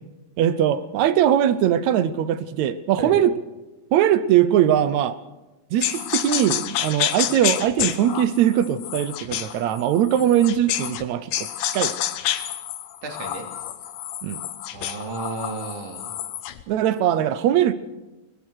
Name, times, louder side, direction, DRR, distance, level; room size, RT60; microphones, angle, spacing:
voice 1, 0.4-3.3 3.9-5.2 5.7-11.9 14.2-14.4 16.7-17.7, right 10 dB, 70° right, 14 dB, 1.9 m, -21 dB
sound 1, 5.8-11.0 11.3-16.6, left 12 dB, 90° left, 2.7 m, -29 dB
voice 2, 13.0-13.5 14.7-16.1, right 3 dB, 50° right, 3 dB, 3.8 m, -33 dB
23.0 x 19.5 x 6.4 m, 1.1 s
omnidirectional pair, 3.8 m